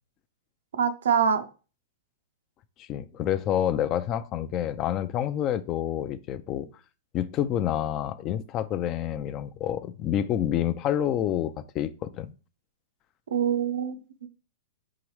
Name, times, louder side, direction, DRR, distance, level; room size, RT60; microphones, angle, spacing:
voice 1, 0.8-1.4 13.3-14.3, right 7 dB, 80° right, 0.5 m, -25 dB
voice 2, 2.8-6.7 7.1-12.3, left 10 dB, 35° left, 0.3 m, -28 dB
4.7 x 3.1 x 3.1 m
hypercardioid pair, 125°, 0 cm